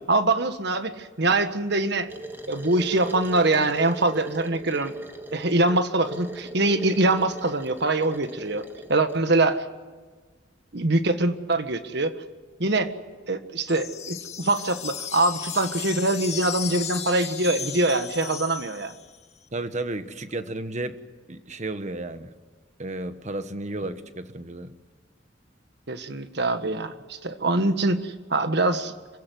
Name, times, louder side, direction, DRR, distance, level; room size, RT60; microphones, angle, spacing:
voice 1, 0.1-2.1 2.5-4.9 5.3-8.6 8.9-9.6 10.7-12.2 12.6-12.9 13.3-18.9 25.9-28.9, right 2 dB, 60° right, 9 dB, 1.6 m, -24 dB
sound 1, 2.1-9.2, right 1 dB, 10° right, 1.7 m, -39 dB
sound 2, 13.7-19.2, left 8 dB, 35° left, 1.8 m, -35 dB
voice 2, 19.5-21.0 21.3-22.3 22.8-24.7, right 2 dB, 40° right, 10 dB, 1.3 m, -33 dB
26.5 x 16.5 x 9.5 m, 1.4 s
head